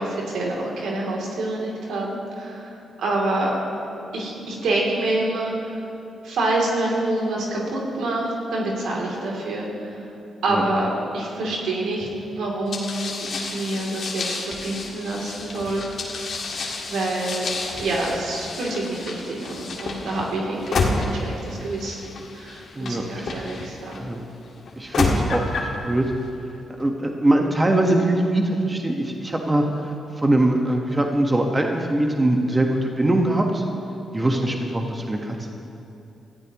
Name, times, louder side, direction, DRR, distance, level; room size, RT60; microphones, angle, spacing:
voice 1, 0.0-2.7 3.0-3.5 4.1-5.7 6.2-9.9 10.4-16.2 16.9-17.5 17.8-22.0 22.3-24.0 34.5-34.6, right 2 dB, 80° right, -3 dB, 3.1 m, -27 dB
sound 1, 12.7-24.0 24.7-25.8, left 3 dB, 65° left, 2.0 m, -30 dB
voice 2, 22.7-23.3 24.0-24.2 24.8-26.0 26.8-29.6 30.2-33.6 34.1-35.5, right 1 dB, 25° right, 2 dB, 1.5 m, -22 dB
22.0 x 14.0 x 3.1 m, 2.7 s
supercardioid pair, 55°, 0 cm